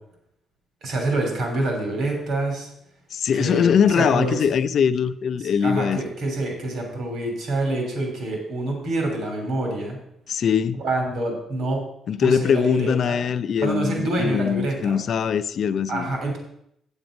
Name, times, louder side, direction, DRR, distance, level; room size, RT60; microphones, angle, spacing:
voice 1, 0.8-2.7 3.4-3.7 4.0-4.3 5.6-10.0 10.7-11.8 12.2-13.2 13.6-14.9 15.9-16.4, right 2 dB, 70° right, 3.1 m, -26 dB
voice 2, 3.1-6.0 10.3-10.8 12.1-16.1, left 7 dB, 60° left, 0.5 m, -22 dB
8.0 x 7.7 x 5.1 m
cardioid pair, 90°, 0 cm